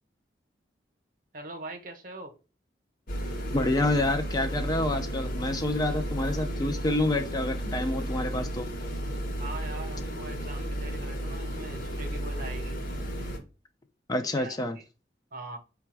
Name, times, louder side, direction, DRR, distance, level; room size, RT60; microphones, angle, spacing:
voice 1, 1.3-2.3 9.4-12.8 14.4-14.8 15.3-15.6, right 2 dB, 50° right, 0.8 m, -42 dB
sound 1, 3.1-13.4, right 1 dB, 50° left, 1.0 m, -33 dB
voice 2, 3.5-8.7 14.1-14.8, left 2 dB, 20° left, 0.4 m, -28 dB
5.0 x 2.3 x 4.5 m
head